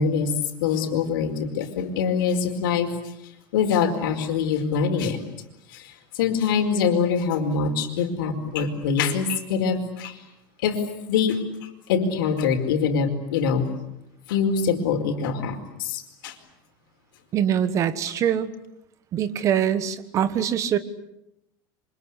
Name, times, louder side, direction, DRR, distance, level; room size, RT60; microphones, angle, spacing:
voice 1, 0.0-3.1 3.5-5.2 5.7-10.2 10.6-13.7 14.3-16.3, left 6 dB, 85° left, 6 dB, 4.8 m, -24 dB
voice 2, 17.3-18.5 19.1-20.8, right 9 dB, 30° right, 13 dB, 1.5 m, -23 dB
28.0 x 25.5 x 8.3 m, 0.84 s
supercardioid pair, 170°, 11 cm